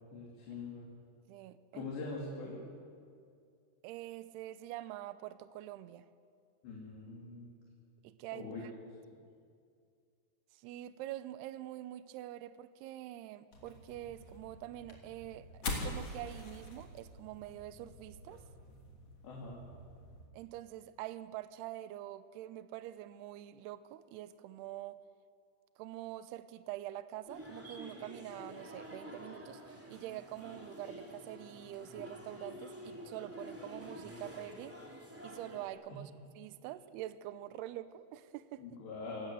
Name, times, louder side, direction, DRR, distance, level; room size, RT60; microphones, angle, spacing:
voice 1, 0.1-0.9 1.7-2.6 6.6-7.5 8.3-8.6 19.2-19.6 35.9-36.0 38.6-39.3, left 3 dB, 70° left, -2 dB, 5.0 m, -43 dB
voice 2, 1.3-1.9 3.8-6.1 8.0-8.7 10.5-15.5 15.8-18.4 20.3-25.0 25.8-34.8 35.2-38.7, right 14 dB, 75° right, 13 dB, 2.6 m, -45 dB
sound 1, 13.5-20.3, left 2 dB, 35° left, 3.7 m, -45 dB
sound 2, 27.3-35.7, equal, 5° right, 2.3 m, -49 dB
27.0 x 18.0 x 7.8 m, 2.3 s
omnidirectional pair, 5.2 m